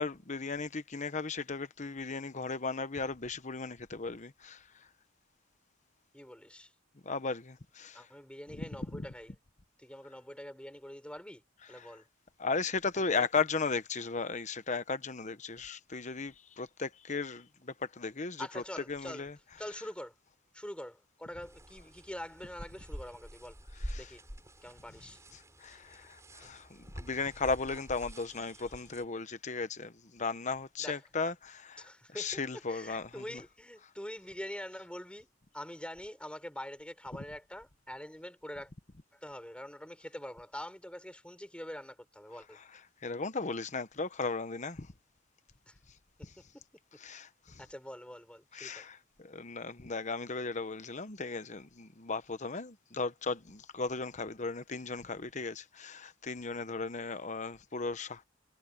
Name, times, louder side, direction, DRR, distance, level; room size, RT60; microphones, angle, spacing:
voice 1, 0.0-4.6 7.0-8.0 8.9-9.1 11.8-11.9 12.4-18.6 18.9-19.3 23.9-24.1 25.6-31.8 32.2-33.2 43.0-44.9 47.0-47.6 48.5-58.2, left 4 dB, 40° left, 1.0 m, -36 dB
voice 2, 6.1-6.7 7.9-9.3 9.8-11.4 11.7-12.1 13.1-13.3 18.4-19.3 19.6-20.1 20.5-23.6 24.0-24.2 24.6-25.2 30.8-31.1 31.8-35.3 35.5-38.7 39.1-42.6 45.7-45.8 46.2-46.6 47.6-48.9, left 1 dB, 5° left, 6.5 m, -45 dB
sound 1, 21.4-29.1, equal, 15° right, 7.6 m, -47 dB
head